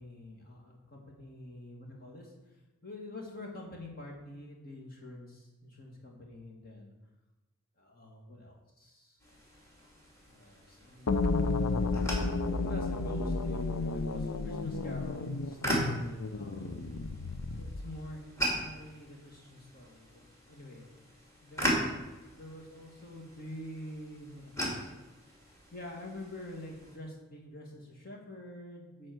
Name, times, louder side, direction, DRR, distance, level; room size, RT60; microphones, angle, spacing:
voice 1, 0.0-2.5 2.8-6.9 7.8-9.2 10.3-11.7 12.6-16.8 17.5-20.2 20.5-20.9 21.4-24.9 25.7-29.1, left 1 dB, 45° left, 0 dB, 2.1 m, -47 dB
sound 1, 9.2-27.0, equal, 15° left, 2.3 m, -40 dB
sound 2, 11.1-18.0, left 3 dB, 85° left, 0.7 m, -32 dB
12.0 x 4.3 x 7.8 m, 1.1 s
head